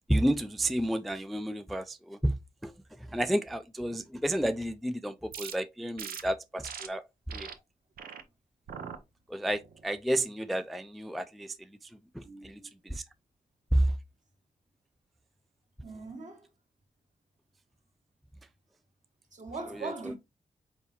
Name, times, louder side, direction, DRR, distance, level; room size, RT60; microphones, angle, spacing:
voice 1, 0.1-2.3 2.6-2.7 3.1-7.0 7.3-7.5 9.3-11.6 12.2-12.6 12.9-13.0 13.7-13.9, right 1 dB, ahead, 0.3 m, -30 dB
sound 1, 5.3-5.5 6.0-6.2 6.6-6.9 7.3-7.5 8.0-8.2 8.7-9.0 9.5-9.8, right 7 dB, 75° right, 0.6 m, -41 dB
voice 2, 12.2-12.7 15.8-16.5 19.3-20.1, right 3 dB, 55° right, 1.5 m, -40 dB
4.0 x 3.6 x 2.9 m
cardioid pair, 55°, 15 cm